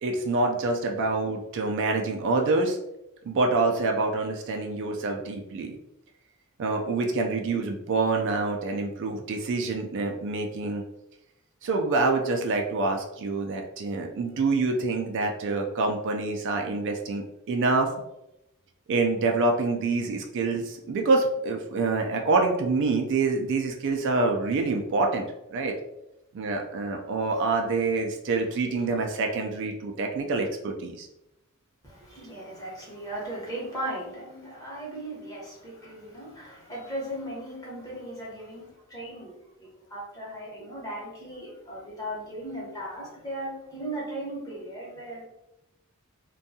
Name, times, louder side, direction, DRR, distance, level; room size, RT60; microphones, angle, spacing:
voice 1, 0.0-2.8 3.2-5.8 6.6-10.8 11.6-17.9 18.9-25.7 26.3-31.1, right 3 dB, 55° right, 2 dB, 0.3 m, -26 dB
voice 2, 31.8-39.3 39.6-45.2, right 1 dB, 15° left, -5 dB, 0.9 m, -37 dB
2.6 x 2.2 x 2.6 m, 0.87 s
head